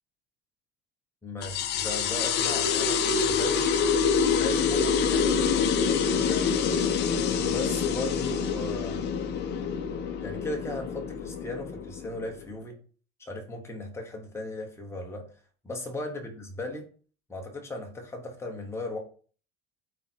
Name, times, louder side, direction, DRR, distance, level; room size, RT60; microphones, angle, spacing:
voice 1, 1.2-3.7 4.3-6.4 7.3-9.0 10.2-12.8 13.2-15.2 15.6-16.9 17.3-19.0, left 2 dB, 10° left, 1 dB, 1.1 m, -37 dB
sound 1, 1.4-12.4, left 6 dB, 30° left, 0.7 m, -26 dB
8.2 x 4.1 x 4.5 m, 0.41 s
cardioid pair, 180°, 33 cm